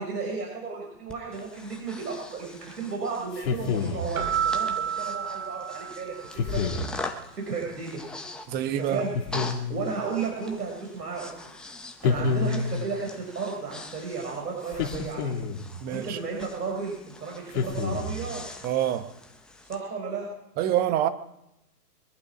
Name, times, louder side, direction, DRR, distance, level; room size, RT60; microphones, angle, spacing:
voice 1, 0.0-6.1 6.4-6.6 7.3-8.0 8.6-9.4 9.7-11.5 12.0-15.3 15.9-18.4 19.7-20.3, right 4 dB, 80° right, 6.3 m, -33 dB
Breathing, 1.1-19.8, left 2 dB, ahead, 0.5 m, -43 dB
sound 1, 3.3-4.2 6.4-7.0 9.1-9.9 12.0-12.9 14.7-15.7 17.5-18.3, left 5 dB, 35° left, 2.8 m, -28 dB
Keyboard (musical), 4.1-6.5, right 8 dB, 60° right, 4.4 m, -30 dB
voice 2, 8.5-9.0 15.8-16.2 18.6-19.1 20.6-21.1, right 11 dB, 20° right, 0.9 m, -26 dB
23.5 x 11.0 x 5.0 m
hypercardioid pair, 130°, 48 cm